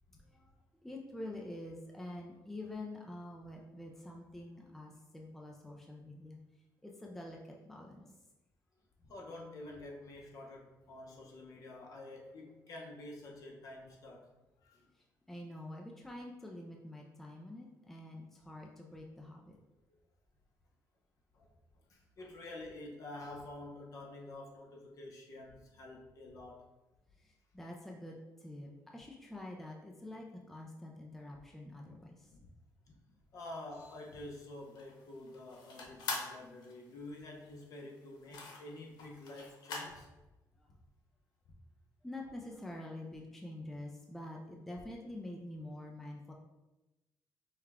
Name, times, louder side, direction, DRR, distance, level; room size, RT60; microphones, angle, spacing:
voice 1, 0.8-6.4 6.8-8.1 15.3-19.6 27.2-32.3 40.6-40.7 42.0-46.3, left 1 dB, 5° left, -1 dB, 0.4 m, -47 dB
voice 2, 9.0-14.3 14.6-14.9 21.3-21.5 21.9-26.7 32.9-33.0 33.3-40.1, left 2 dB, 55° left, -1 dB, 0.9 m, -48 dB
sound 1, 33.7-40.0, left 3 dB, 90° left, 0.9 m, -45 dB
5.5 x 2.3 x 3.5 m, 1.0 s
cardioid pair, 140°, 7 cm